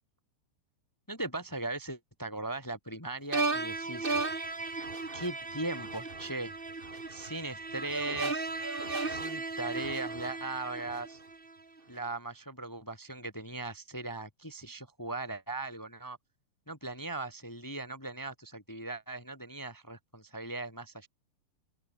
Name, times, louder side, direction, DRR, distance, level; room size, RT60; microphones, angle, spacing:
voice 1, 1.1-4.1 5.1-6.5 7.1-8.5 9.1-11.2 11.9-16.2 16.7-21.1, right 2 dB, 15° left, 0.7 m, -39 dB
sound 1, 3.3-11.5, right 3 dB, 20° right, 1.5 m, -35 dB
open air
omnidirectional pair, 4.8 m